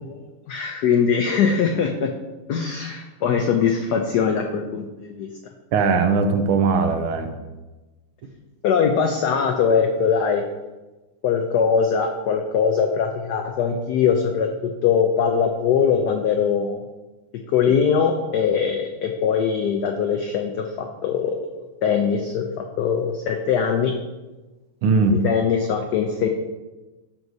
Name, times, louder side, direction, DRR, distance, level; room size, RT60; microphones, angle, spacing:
voice 1, 0.0-2.1 2.5-5.3 8.6-10.4 11.2-16.8 17.5-22.4 22.8-23.9 25.1-26.3, left 6 dB, 90° left, 4 dB, 0.8 m, -21 dB
voice 2, 5.7-7.3 24.8-25.2, right 4 dB, 85° right, 6 dB, 1.6 m, -19 dB
11.5 x 4.6 x 2.7 m, 1.2 s
omnidirectional pair, 2.3 m